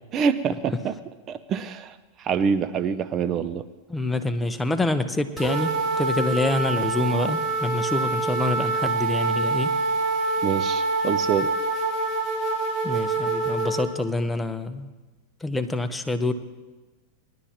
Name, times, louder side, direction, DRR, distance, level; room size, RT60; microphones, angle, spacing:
voice 1, 0.1-0.9 1.3-3.7 10.4-11.5, right 6 dB, 35° right, 13 dB, 0.5 m, -26 dB
voice 2, 3.9-9.8 12.8-14.9 15.4-16.3, left 2 dB, 10° left, 8 dB, 0.8 m, -26 dB
sound 1, 5.4-13.9, right 3 dB, 15° right, 4.4 m, -25 dB
19.5 x 11.5 x 2.9 m, 1.3 s
hypercardioid pair, 110°, 0 cm